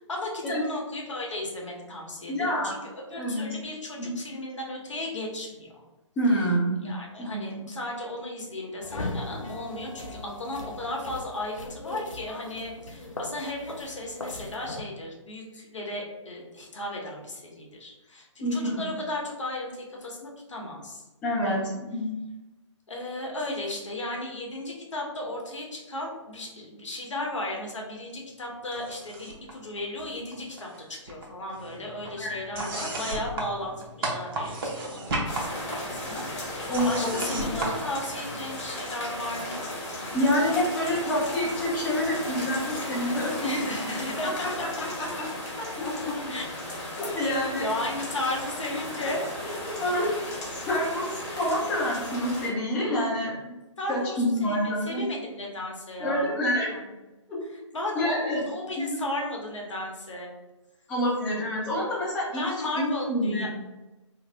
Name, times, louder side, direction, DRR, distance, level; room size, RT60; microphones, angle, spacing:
voice 1, 0.1-5.8 6.8-21.0 21.3-21.6 22.9-39.7 43.4-44.5 46.3-46.4 47.6-49.3 53.8-56.3 56.7-56.9 57.5-60.3 62.3-63.5, left 1 dB, 70° left, -1 dB, 0.9 m, -35 dB
voice 2, 2.3-2.8 3.1-3.5 4.0-4.1 6.2-6.8 7.2-7.6 18.4-18.9 21.2-22.1 32.1-32.8 36.7-37.4 40.1-43.6 44.6-45.1 45.6-46.3 47.0-47.6 49.8-50.1 50.5-53.5 53.9-55.1 56.0-56.7 57.3-57.4 57.9-58.4 58.8-59.0 60.9-62.5 62.8-63.5, equal, 10° left, -7 dB, 0.5 m, -27 dB
sound 1, 8.8-14.8, left 2 dB, 85° left, 0.5 m, -38 dB
sound 2, 28.7-29.5 29.8-30.8 31.1-38.6, right 2 dB, 45° right, 0.7 m, -35 dB
sound 3, 35.3-52.5, left 1 dB, 30° left, 0.9 m, -35 dB
2.6 x 2.0 x 3.2 m, 1.1 s
figure-of-eight pair, 140°, 16 cm